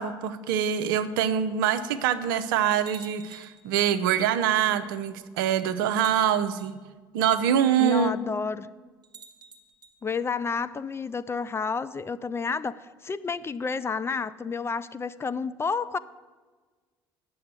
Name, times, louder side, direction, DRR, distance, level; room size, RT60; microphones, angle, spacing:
voice 1, 0.0-6.7 7.1-8.1, right 9 dB, 70° right, 12 dB, 0.6 m, -24 dB
sound 1, 2.9-3.7 4.9-5.0 5.8-6.7 9.0-9.9, right 5 dB, 35° right, 1.2 m, -49 dB
voice 2, 7.8-8.7 10.0-16.0, left 5 dB, 20° left, 14 dB, 0.4 m, -30 dB
8.6 x 7.0 x 8.0 m, 1.4 s
figure-of-eight pair, 60°, 12 cm